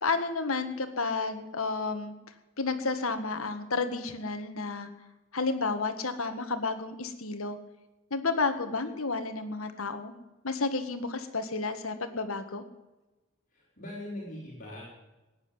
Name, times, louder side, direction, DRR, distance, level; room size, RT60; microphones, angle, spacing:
voice 1, 0.0-2.1 2.6-4.9 5.3-7.6 8.1-10.1 10.4-12.6, left 3 dB, 80° left, 8 dB, 1.8 m, -31 dB
voice 2, 13.5-14.8, left 1 dB, 40° left, -4 dB, 5.3 m, -41 dB
17.0 x 10.0 x 8.1 m, 1.1 s
head